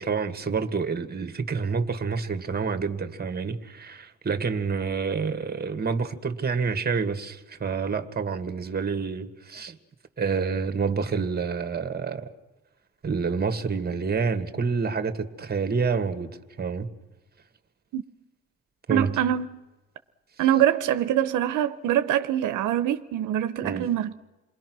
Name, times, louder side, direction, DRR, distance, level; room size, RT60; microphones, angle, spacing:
voice 1, 0.0-9.8 10.2-12.3 13.0-16.9 18.9-19.2 23.6-23.9, right 5 dB, 30° right, 2.0 m, -28 dB
voice 2, 18.9-19.5 20.4-24.1, right 11 dB, 85° right, 0.9 m, -24 dB
28.0 x 21.0 x 6.2 m
cardioid pair, 90°, 30 cm